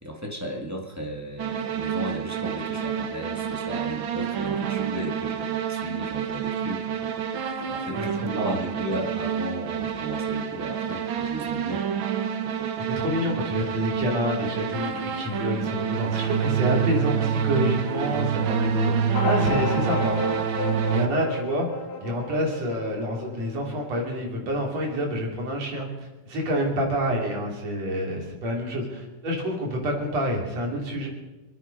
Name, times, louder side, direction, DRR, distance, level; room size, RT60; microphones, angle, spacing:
voice 1, 0.0-11.9, right 1 dB, 10° right, 0 dB, 0.9 m, -35 dB
sound 1, 1.4-21.1, right 8 dB, 80° right, 1.1 m, -27 dB
voice 2, 7.9-8.6 12.9-20.4 20.9-31.1, equal, 55° right, 0 dB, 4.1 m, -28 dB
sound 2, 19.1-24.1, left 4 dB, 85° left, 2.7 m, -32 dB
27.0 x 9.8 x 5.3 m, 1.1 s
omnidirectional pair, 3.7 m